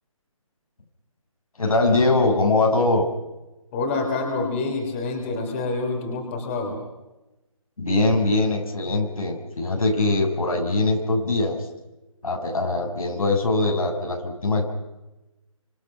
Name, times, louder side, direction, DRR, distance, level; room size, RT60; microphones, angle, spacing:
voice 1, 1.6-3.1 7.8-11.7 12.2-14.7, left 2 dB, 80° left, 2 dB, 6.9 m, -22 dB
voice 2, 3.7-6.8, left 3 dB, 20° left, 3 dB, 3.3 m, -27 dB
27.5 x 26.0 x 5.8 m, 1.0 s
hypercardioid pair, 165°, 18 cm